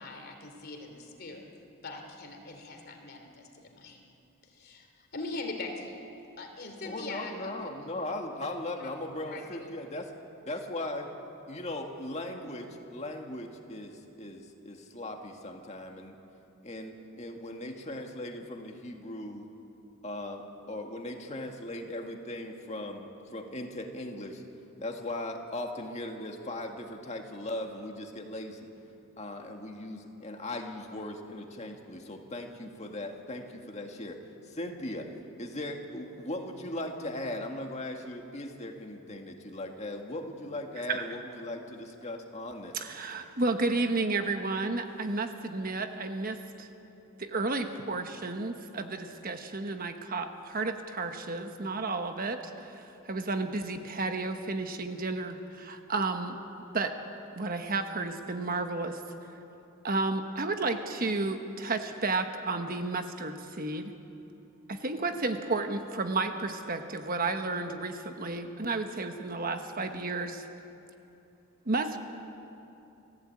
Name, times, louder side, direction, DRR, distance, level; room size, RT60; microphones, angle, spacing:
voice 1, 0.0-1.4 1.8-4.0 4.4-6.1 6.4-7.5 8.8-8.9 9.2-9.7, left 3 dB, 45° left, 4 dB, 3.1 m, -42 dB
voice 2, 6.8-10.1 10.4-11.1 11.5-16.2 16.6-19.5 20.0-24.4 24.8-28.7 29.2-34.2 34.5-35.1 35.4-42.8, left 1 dB, 30° left, 3 dB, 2.0 m, -38 dB
voice 3, 42.7-46.7 47.2-56.4 56.7-57.0 57.4-59.0 59.8-63.9 64.7-70.5 71.6-72.0, right 3 dB, 40° right, 6 dB, 1.2 m, -32 dB
29.5 x 15.5 x 8.7 m, 2.9 s
head